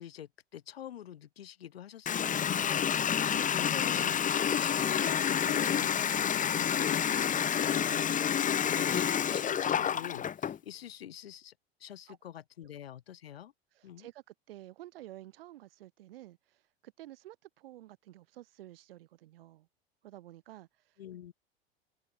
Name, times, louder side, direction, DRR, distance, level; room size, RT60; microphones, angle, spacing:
voice 1, 0.0-11.5 11.8-13.5 13.8-14.1 21.0-21.3, left 10 dB, 70° left, 3.8 m, -46 dB
Water tap faucet, 2.1-10.6, left 8 dB, 25° left, 1.9 m, -29 dB
voice 2, 13.7-19.7 20.0-21.0, right 15 dB, 60° right, 4.8 m, -51 dB
figure-of-eight pair, 80°, 32 cm